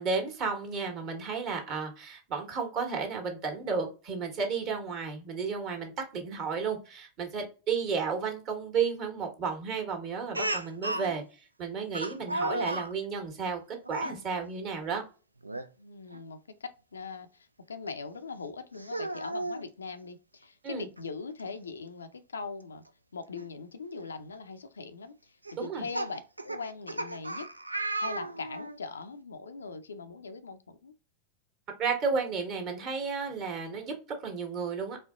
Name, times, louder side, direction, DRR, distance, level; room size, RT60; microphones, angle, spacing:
voice 1, 0.0-13.6 13.9-15.0 20.6-20.9 25.6-25.8 31.8-33.9 34.2-35.0, right 5 dB, 40° right, 1.3 m, -32 dB
Speech, 10.3-11.1 11.9-12.9 13.8-14.2 15.4-15.7 16.1-16.2 17.9-18.0 18.8-19.6 21.0-21.1 21.4-21.5 23.4-23.5 24.1-24.3 25.4-28.8, right 2 dB, 85° right, 0.3 m, -34 dB
voice 2, 15.8-22.8 23.1-25.2 25.6-27.5 28.0-30.9, left 4 dB, 70° left, 0.4 m, -41 dB
4.3 x 2.8 x 2.4 m
figure-of-eight pair, 90°, 0 cm